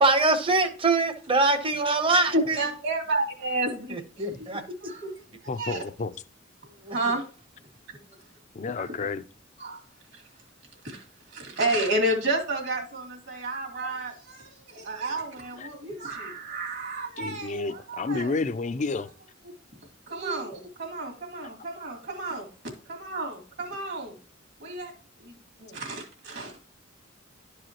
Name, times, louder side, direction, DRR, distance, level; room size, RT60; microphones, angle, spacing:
voice 1, 0.0-2.6 3.9-4.6 6.8-7.0, right 3 dB, 25° right, 0.8 m, -23 dB
voice 2, 2.3-4.2 4.8-5.2 5.6-5.8 6.9-7.3 8.8-9.1 9.6-9.8 10.1-10.2 10.8-18.3 20.1-22.5 22.9-24.1 24.6-24.9 25.2-26.6, right 2 dB, 60° right, 2.3 m, -31 dB
voice 3, 5.5-6.1 8.5-9.2 13.8-13.9 15.6-15.7 17.2-19.1, left 3 dB, 35° left, 0.4 m, -30 dB
11.5 x 4.8 x 3.0 m
head